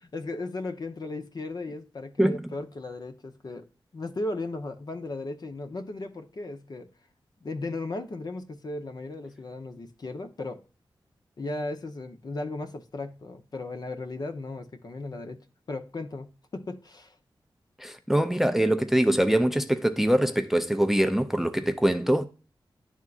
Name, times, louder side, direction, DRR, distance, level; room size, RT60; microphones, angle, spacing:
voice 1, 0.1-3.7 3.9-6.9 7.4-10.6 11.4-15.4 15.7-17.2, left 2 dB, 50° left, 0.7 m, -36 dB
voice 2, 17.8-22.3, right 1 dB, 5° right, 0.4 m, -23 dB
10.5 x 3.6 x 2.4 m
wide cardioid pair, 100°, 9 cm